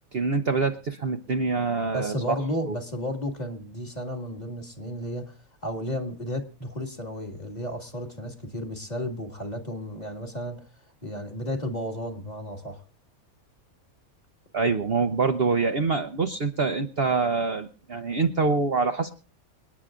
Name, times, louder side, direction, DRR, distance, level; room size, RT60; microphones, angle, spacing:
voice 1, 0.1-2.4 2.7-2.8 14.5-19.1, right 4 dB, 50° right, 6 dB, 0.9 m, -25 dB
voice 2, 1.9-10.7 11.0-12.8, equal, 30° left, 3 dB, 2.1 m, -33 dB
28.0 x 9.7 x 2.5 m, 0.37 s
omnidirectional pair, 1.6 m